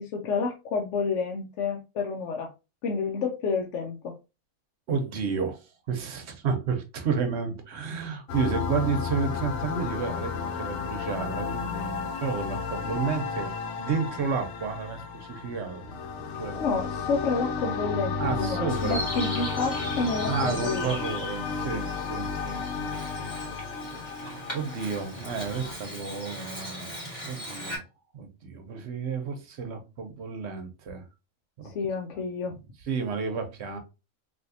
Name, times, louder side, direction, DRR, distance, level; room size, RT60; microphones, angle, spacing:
voice 1, 0.0-2.5 2.8-4.1 12.8-13.0 16.6-20.9 31.6-32.5, left 4 dB, 70° left, 0.9 m, -29 dB
voice 2, 4.9-13.5 13.8-16.0 16.4-16.7 18.2-19.0 20.2-23.3 23.8-24.2 24.5-26.9 27.2-27.8 28.1-31.0 31.6-31.7 32.5-32.6 32.8-33.8, right 5 dB, 60° right, 0.9 m, -31 dB
sound 1, 8.3-25.7, left 5 dB, 90° left, 1.0 m, -33 dB
Bird vocalization bird call bird song, 18.7-27.8, equal, 20° left, 2.0 m, -39 dB
3.4 x 2.6 x 2.6 m
omnidirectional pair, 1.4 m